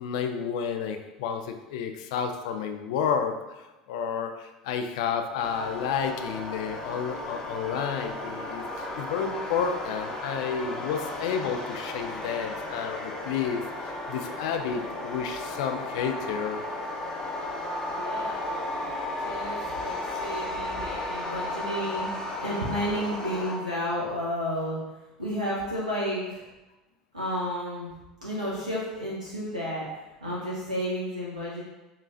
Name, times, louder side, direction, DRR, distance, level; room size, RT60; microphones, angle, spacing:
voice 1, 0.0-16.6, left 7 dB, 55° left, 6 dB, 0.4 m, -31 dB
sound 1, 5.4-23.6, left 1 dB, 15° left, 0.9 m, -34 dB
voice 2, 17.8-18.8 19.2-24.8 25.2-26.4 27.1-27.9 28.2-29.9 30.2-31.6, equal, 80° right, -6 dB, 0.8 m, -32 dB
6.5 x 3.0 x 2.6 m, 1.1 s
figure-of-eight pair, 75°, 4 cm